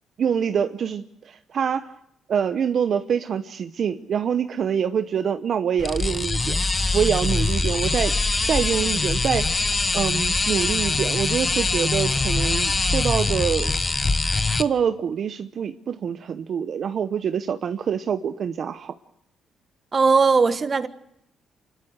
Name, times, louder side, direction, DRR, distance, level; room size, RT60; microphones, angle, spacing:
voice 1, 0.2-1.9 2.3-6.6 6.9-8.2 8.5-13.7 14.5-18.9, right 7 dB, 55° right, 0.8 m, -25 dB
sound 1, 5.8-14.6, left 3 dB, 25° left, 1.0 m, -23 dB
voice 2, 19.9-20.9, right 4 dB, 35° right, 1.4 m, -18 dB
27.5 x 12.5 x 7.9 m
cardioid pair, 90°, 0 cm